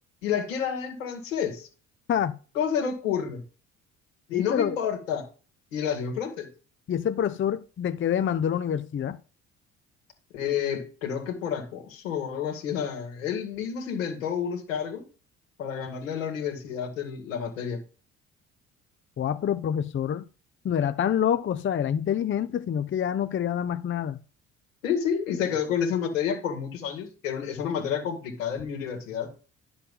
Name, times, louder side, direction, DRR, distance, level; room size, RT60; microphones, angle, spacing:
voice 1, 0.2-1.7 2.6-3.4 4.3-5.2 5.7-6.5 10.3-15.0 15.6-17.8 24.8-29.3, left 8 dB, 85° left, 2.3 m, -29 dB
voice 2, 4.3-4.8 6.9-9.2 19.2-20.3 20.6-24.2, left 9 dB, 30° left, 0.7 m, -26 dB
10.5 x 7.1 x 3.8 m
hypercardioid pair, 55°, 38 cm